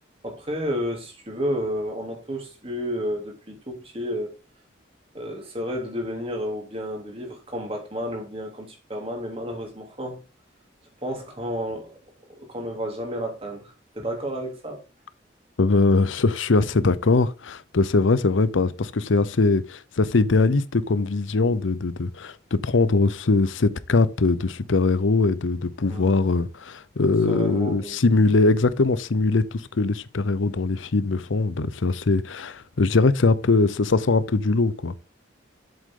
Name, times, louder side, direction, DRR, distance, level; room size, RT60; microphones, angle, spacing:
voice 1, 0.2-4.3 5.1-10.2 11.0-12.0 12.3-14.8 25.9-26.2 27.3-28.0, equal, 30° right, 3.0 m, -31 dB
voice 2, 15.6-34.9, left 3 dB, 90° left, 0.7 m, -21 dB
7.9 x 7.6 x 3.7 m
head